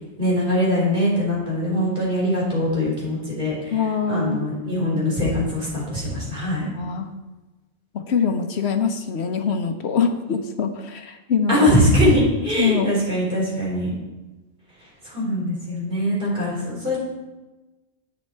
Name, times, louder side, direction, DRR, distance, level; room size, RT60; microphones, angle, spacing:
voice 1, 0.2-3.8 4.1-6.7 11.5-13.9 15.0-17.0, left 1 dB, 45° right, -5 dB, 4.3 m, -22 dB
voice 2, 3.7-4.4 6.7-7.1 7.9-11.6 12.6-12.9, left 6 dB, 70° left, 7 dB, 1.0 m, -23 dB
10.5 x 8.1 x 4.4 m, 1.1 s
omnidirectional pair, 1.2 m